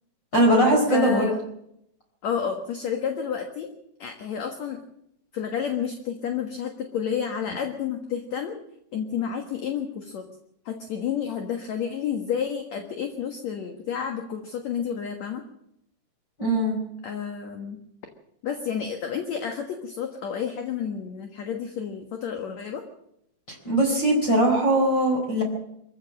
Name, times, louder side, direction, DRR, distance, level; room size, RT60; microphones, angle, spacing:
voice 1, 0.3-1.3 16.4-16.8 23.5-25.4, right 1 dB, 25° left, 0 dB, 4.7 m, -20 dB
voice 2, 0.9-1.4 2.2-3.7 4.0-4.8 5.3-8.6 8.9-10.2 10.7-15.4 17.0-17.8 18.4-22.8, left 7 dB, 55° left, 5 dB, 2.1 m, -30 dB
24.0 x 15.0 x 7.6 m, 0.78 s
omnidirectional pair, 4.9 m